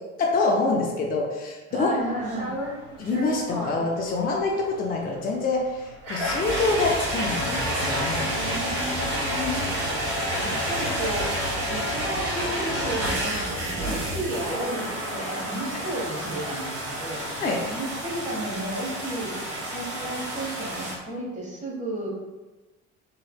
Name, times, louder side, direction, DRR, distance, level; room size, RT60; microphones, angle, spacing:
voice 1, 0.2-1.9 3.0-8.2 9.2-9.5 13.9-14.0 17.4-17.6, left 3 dB, 25° left, 0 dB, 0.5 m, -26 dB
voice 2, 1.7-2.6 8.2-11.4 11.7-17.3 17.7-19.4 19.7-22.1, right 1 dB, 20° right, -2 dB, 1.0 m, -33 dB
sound 1, 2.0-21.0, equal, 60° right, 1.2 m, -30 dB
4.1 x 2.7 x 2.2 m, 1.2 s
figure-of-eight pair, 50°, 38 cm